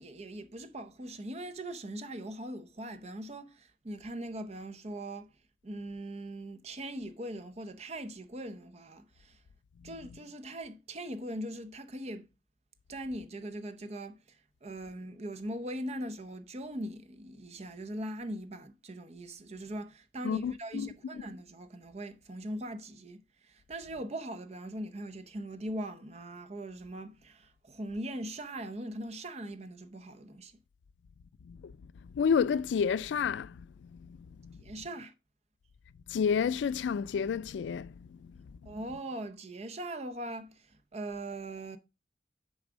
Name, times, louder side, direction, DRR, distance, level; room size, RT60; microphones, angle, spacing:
voice 1, 0.0-5.3 5.6-9.4 9.8-12.3 12.9-14.2 14.6-30.5 34.6-35.1 38.7-41.8, right 1 dB, 35° right, 0.7 m, -40 dB
voice 2, 20.2-21.2 31.5-31.7 32.1-33.5 34.4-34.5 36.1-37.9, left 6 dB, 85° left, 0.3 m, -30 dB
6.9 x 4.0 x 4.9 m
head